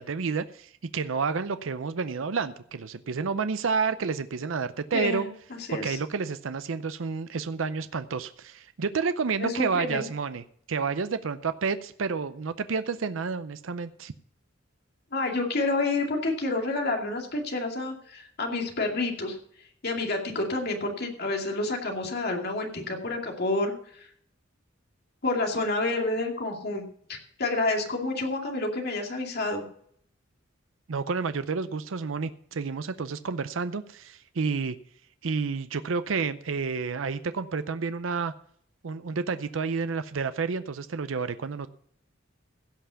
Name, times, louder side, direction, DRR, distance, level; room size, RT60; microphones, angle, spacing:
voice 1, 0.0-5.3 5.7-14.1 30.9-34.8 35.2-38.3 38.8-41.7, right 5 dB, 80° right, 12 dB, 0.6 m, -30 dB
voice 2, 4.9-6.0 9.4-10.0 15.1-19.4 19.8-24.1 25.2-26.8 27.1-29.6, left 2 dB, 55° left, 2 dB, 2.5 m, -29 dB
16.0 x 5.8 x 6.9 m, 0.64 s
head